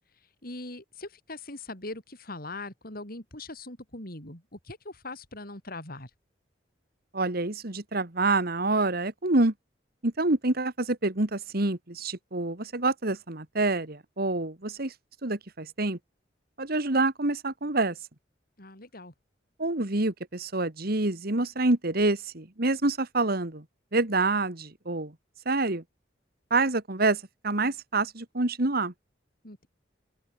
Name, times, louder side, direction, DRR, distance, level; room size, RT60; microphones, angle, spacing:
voice 1, 0.4-6.1 18.6-19.1 29.4-29.7, left 2 dB, 55° left, 7.0 m, -41 dB
voice 2, 7.1-9.5 10.0-14.9 15.2-16.0 16.6-18.0 19.6-23.6 23.9-25.1 25.5-25.8 26.5-28.9, right 2 dB, 55° right, 2.2 m, -27 dB
head